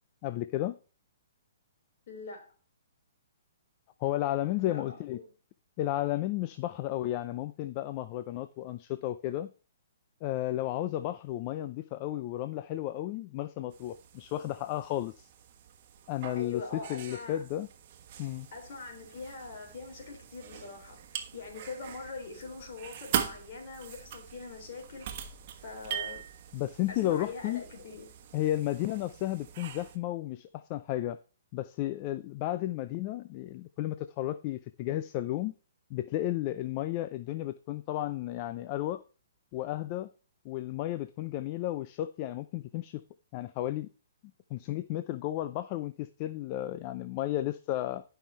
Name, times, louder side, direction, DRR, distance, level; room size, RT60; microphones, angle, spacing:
voice 1, 0.2-0.8 4.0-5.2 5.8-9.5 10.2-15.3 16.1-17.7 18.2-18.5 26.5-27.6 28.3-31.2 31.5-35.5 35.9-39.0 39.5-40.1 40.4-43.0 43.3-43.9 44.5-48.0, left 14 dB, 30° left, 0.4 m, -33 dB
voice 2, 2.1-2.6 4.5-5.3 16.3-17.4 18.5-25.1 25.5-26.2 26.9-28.3, left 4 dB, 50° left, 3.3 m, -43 dB
sound 1, 13.7-30.0, right 9 dB, 40° right, 1.4 m, -42 dB
11.5 x 5.6 x 4.3 m
hypercardioid pair, 155°, 0 cm